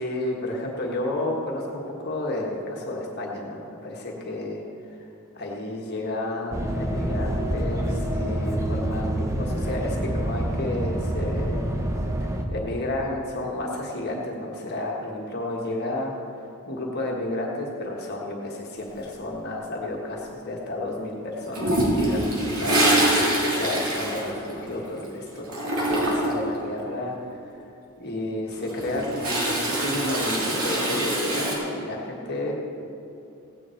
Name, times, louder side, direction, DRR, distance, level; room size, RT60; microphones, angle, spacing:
voice 1, 0.0-11.7 12.2-16.1 16.4-25.4 25.9-27.6 28.0-32.5, left 1 dB, 45° left, -1 dB, 1.5 m, -31 dB
sound 1, 6.5-12.4, right 1 dB, 15° right, 0.8 m, -27 dB
Toilet flush, 21.5-25.0 25.3-26.5 28.5-31.6, right 1 dB, 75° right, 3.1 m, -24 dB
16.0 x 9.8 x 4.5 m, 2.8 s
head